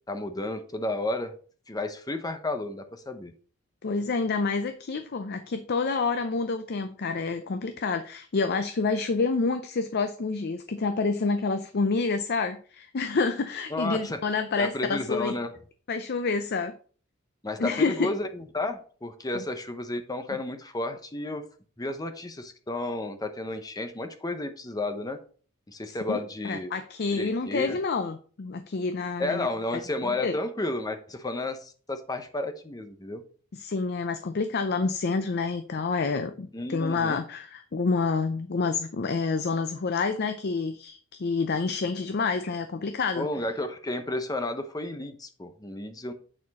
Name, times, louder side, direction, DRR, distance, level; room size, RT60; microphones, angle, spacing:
voice 1, 0.1-1.3 1.7-3.3 13.7-14.2 14.6-15.5 17.4-21.4 21.8-25.2 25.7-26.7 27.1-27.8 29.2-33.2 36.5-37.2 43.1-46.1, left 2 dB, 20° left, 8 dB, 0.8 m, -32 dB
voice 2, 3.8-15.3 15.9-16.7 17.6-18.1 19.3-19.4 25.9-26.2 26.4-29.5 30.0-30.3 33.5-43.3, left 4 dB, 50° left, 8 dB, 0.5 m, -28 dB
8.7 x 4.4 x 4.1 m, 0.42 s
head